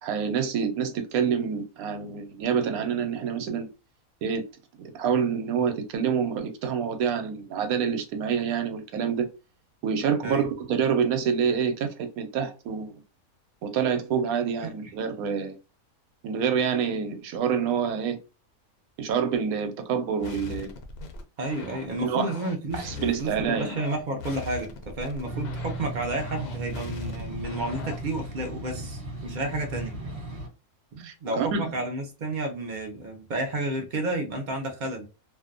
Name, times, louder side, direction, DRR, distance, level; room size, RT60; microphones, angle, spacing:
voice 1, 0.0-3.7 4.2-4.4 4.8-9.3 9.8-12.9 13.6-15.6 16.2-18.2 19.0-20.7 22.0-22.3 22.7-23.7 31.0-31.7, right 7 dB, 90° right, 1.1 m, -27 dB
voice 2, 14.6-14.9 21.4-30.0 30.9-35.1, right 2 dB, 65° right, 0.4 m, -31 dB
sound 1, 20.2-28.2, left 5 dB, 65° left, 0.6 m, -41 dB
sound 2, 25.2-30.5, right 1 dB, 30° right, 0.9 m, -36 dB
2.5 x 2.1 x 2.4 m
omnidirectional pair, 1.5 m